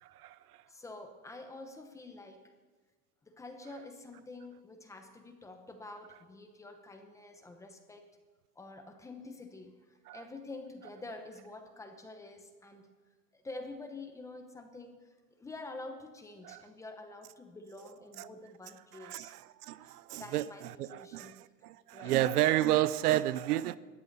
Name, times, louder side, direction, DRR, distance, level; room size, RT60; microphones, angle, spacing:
voice 1, 0.0-0.4 10.1-10.2 16.4-16.6 18.2-18.3 19.0-21.3 21.6-23.8, right 14 dB, 65° right, 0.7 m, -31 dB
voice 2, 0.6-2.5 3.2-8.0 8.6-12.9 13.3-19.3 19.8-21.4 21.9-22.2, left 2 dB, 5° left, 0.8 m, -48 dB
19.5 x 14.0 x 4.1 m
supercardioid pair, 155°, 49 cm